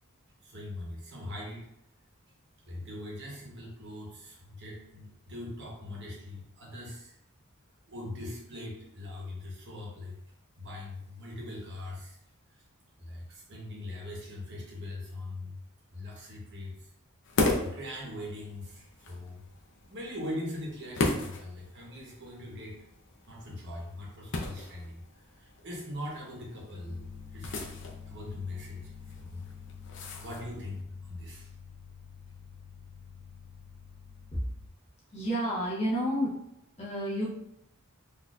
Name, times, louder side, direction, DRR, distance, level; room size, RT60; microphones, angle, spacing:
voice 1, 0.4-1.7 2.6-7.1 7.9-10.2 10.6-12.2 12.5-12.6 13.0-15.6 15.9-16.9 17.6-19.5 19.9-22.7 23.3-27.7 28.1-29.5 30.2-31.5, left 1 dB, 55° right, -3 dB, 1.0 m, -41 dB
sound 1, 17.2-30.8, left 2 dB, 55° left, 0.6 m, -37 dB
sound 2, 26.9-34.7, left 6 dB, 20° right, 0.5 m, -47 dB
voice 2, 35.1-36.4 36.8-37.3, equal, 30° left, -6 dB, 1.0 m, -30 dB
4.1 x 2.7 x 2.4 m, 0.81 s
head